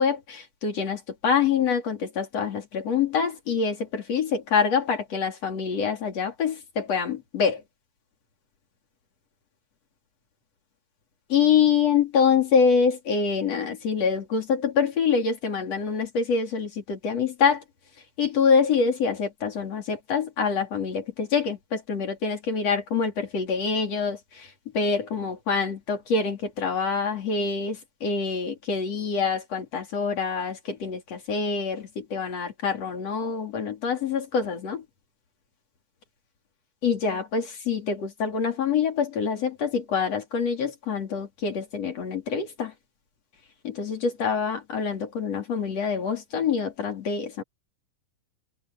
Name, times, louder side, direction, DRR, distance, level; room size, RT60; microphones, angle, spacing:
voice 1, 0.0-7.6 11.3-17.6 18.2-24.5 24.7-34.8 36.8-42.7 43.6-47.4, left 6 dB, 45° left, 4.2 m, -25 dB
omnidirectional pair, 4.2 m